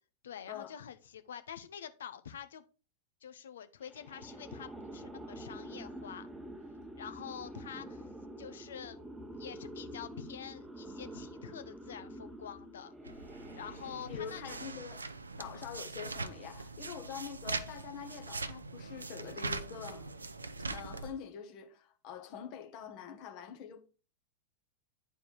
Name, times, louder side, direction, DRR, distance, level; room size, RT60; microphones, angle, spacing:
voice 1, 0.2-2.6 3.2-6.3 6.9-8.1 8.4-9.0 9.4-13.3 13.6-14.6 15.4-15.5, left 8 dB, 65° left, 0.8 m, -46 dB
sound 1, 3.9-15.0, right 1 dB, 5° right, 1.1 m, -47 dB
sound 2, 13.0-21.1, right 3 dB, 75° right, 0.6 m, -42 dB
voice 2, 14.1-15.0 15.4-20.1 20.6-23.8, left 8 dB, 40° left, 1.6 m, -45 dB
10.0 x 4.6 x 4.7 m
figure-of-eight pair, 90°, 0 cm